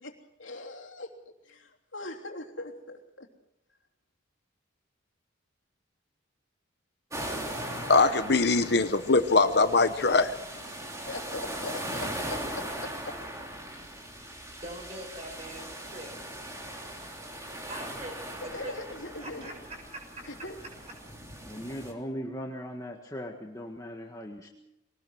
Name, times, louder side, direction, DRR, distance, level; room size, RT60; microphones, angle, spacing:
voice 1, 0.0-3.3 11.1-12.4 12.8-13.1 18.5-19.5 20.2-20.6, left 2 dB, 75° left, 3.2 m, -41 dB
sound 1, 7.1-21.9, right 1 dB, 15° right, 3.2 m, -39 dB
voice 2, 7.6-10.3, left 3 dB, 55° left, 0.9 m, -22 dB
voice 3, 14.6-16.1 17.6-18.2 18.4-18.8 19.2-19.5 19.9-20.2, right 1 dB, 35° right, 6.9 m, -42 dB
voice 4, 21.5-24.5, equal, 15° left, 1.7 m, -38 dB
23.5 x 19.5 x 6.3 m
head